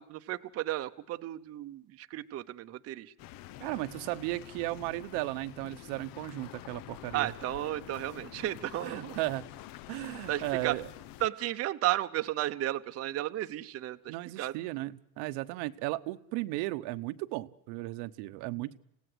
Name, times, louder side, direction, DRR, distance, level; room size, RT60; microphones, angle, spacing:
voice 1, 0.0-3.1 7.1-9.2 10.3-10.7 11.2-14.5, right 14 dB, 35° right, 8 dB, 0.8 m, -33 dB
sound 1, 3.2-11.3, left 14 dB, 55° left, 0.8 m, -47 dB
voice 2, 3.6-7.3 8.8-9.5 9.9-10.9 14.1-18.8, right 19 dB, 75° right, 10 dB, 1.0 m, -35 dB
27.0 x 17.0 x 8.0 m, 0.82 s
cardioid pair, 150°, 40 cm